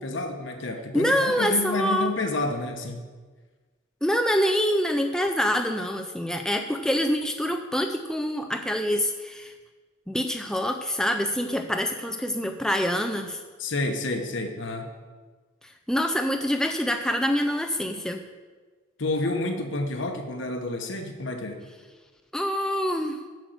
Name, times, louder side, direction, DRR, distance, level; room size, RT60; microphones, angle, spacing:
voice 1, 0.0-3.0 13.6-14.9 19.0-21.7, left 2 dB, 70° left, 5 dB, 1.1 m, -29 dB
voice 2, 0.9-2.1 4.0-9.5 10.1-13.4 15.9-18.2 22.3-23.2, equal, 5° left, 5 dB, 0.4 m, -25 dB
7.7 x 6.4 x 7.9 m, 1.4 s
head